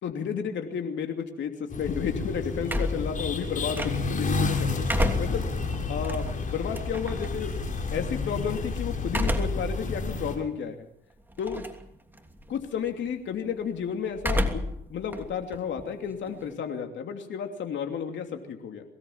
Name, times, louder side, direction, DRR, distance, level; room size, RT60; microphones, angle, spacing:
voice 1, 0.0-5.5 5.9-7.5 7.9-10.9 11.4-11.6 12.5-14.6 14.9-18.8, left 7 dB, 70° left, 4 dB, 2.9 m, -32 dB
sound 1, 1.7-10.4, left 3 dB, 40° left, 5.8 m, -30 dB
sound 2, 2.7-4.3 4.7-7.3 9.1-9.7 10.2-10.3 11.4-11.9 12.2-12.6 14.2-14.8 15.1-16.5, equal, 10° right, 2.9 m, -30 dB
23.5 x 18.0 x 7.3 m, 0.69 s
cardioid pair, 90°, 20 cm